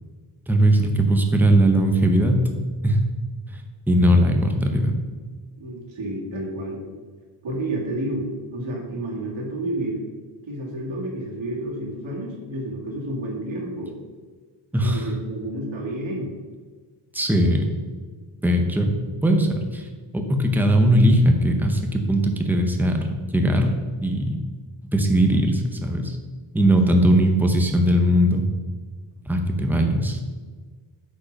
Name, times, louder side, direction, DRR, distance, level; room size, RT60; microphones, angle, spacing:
voice 1, 0.5-2.5 2.8-3.0 3.5-3.6 3.9-5.0 14.7-15.1 17.1-17.7 18.4-19.9 20.1-23.0 23.3-24.4 24.9-26.2 26.5-28.4 29.3-30.2, right 1 dB, 5° right, 3 dB, 0.7 m, -19 dB
voice 2, 5.6-6.8 7.4-10.1 10.4-13.9 14.8-16.4 26.9-27.4, right 1 dB, 70° right, -2 dB, 2.3 m, -30 dB
8.6 x 5.2 x 5.3 m, 1.5 s
wide cardioid pair, 175°, 49 cm